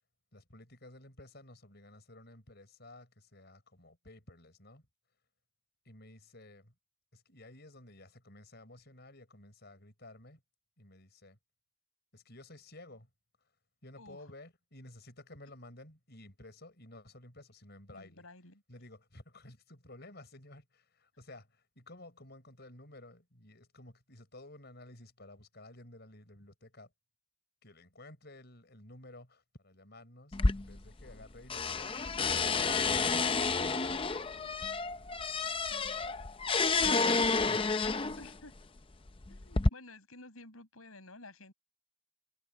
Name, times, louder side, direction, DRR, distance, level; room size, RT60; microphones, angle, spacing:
voice 1, 0.3-4.9 5.8-6.7 7.1-10.4 10.8-11.4 12.1-13.1 13.8-18.3 18.7-26.9 27.6-33.5 37.4-37.7, left 1 dB, 50° left, 5.7 m, -54 dB
voice 2, 17.9-18.6 35.7-35.8 38.1-38.5 39.3-41.5, left 2 dB, 85° left, 8.0 m, -52 dB
sound 1, 30.3-31.2 31.5-38.3 39.1-39.7, left 4 dB, 25° left, 0.6 m, -30 dB
head